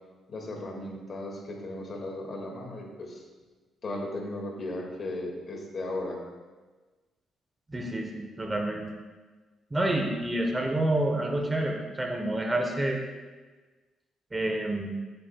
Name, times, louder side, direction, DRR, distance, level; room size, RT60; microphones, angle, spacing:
voice 1, 0.3-3.2 3.8-6.2, left 1 dB, 45° left, 0 dB, 2.0 m, -36 dB
voice 2, 7.7-8.9 9.7-13.0 14.3-14.9, right 1 dB, 20° right, 2 dB, 1.0 m, -28 dB
13.0 x 7.8 x 2.3 m, 1.3 s
cardioid pair, 90°, 0 cm